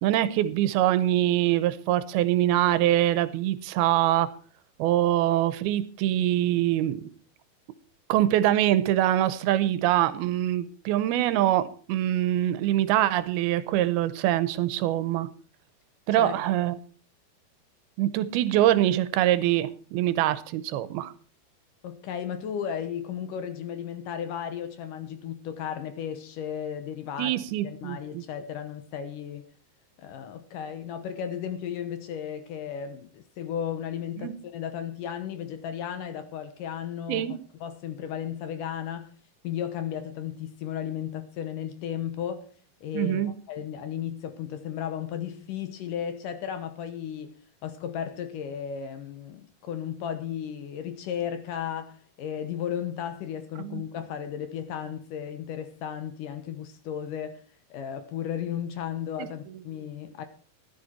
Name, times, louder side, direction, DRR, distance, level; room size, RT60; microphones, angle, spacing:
voice 1, 0.0-4.3 4.8-7.0 8.1-15.3 16.1-16.8 18.0-21.1 27.2-28.2 34.2-34.3 37.1-37.4 42.9-43.3 53.6-53.8, right 13 dB, 85° right, 2.7 m, -24 dB
voice 2, 21.8-27.4 27.6-29.4 30.0-39.1 39.4-42.5 42.8-47.4 47.6-57.4 57.7-60.3, left 9 dB, 70° left, 2.3 m, -34 dB
13.5 x 11.0 x 4.4 m
omnidirectional pair, 4.4 m